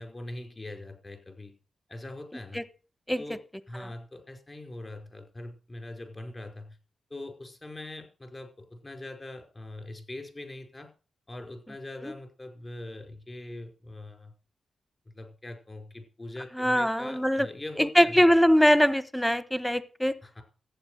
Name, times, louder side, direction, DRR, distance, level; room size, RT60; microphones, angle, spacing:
voice 1, 0.0-1.5 1.9-2.6 3.2-3.4 3.7-6.8 7.1-10.9 11.3-14.3 15.1-18.3 20.2-20.4, left 2 dB, 25° left, 5.0 m, -42 dB
voice 2, 16.6-17.5 17.8-20.1, equal, 5° left, 1.2 m, -22 dB
14.5 x 9.1 x 6.5 m
cardioid pair, 70°, 0 cm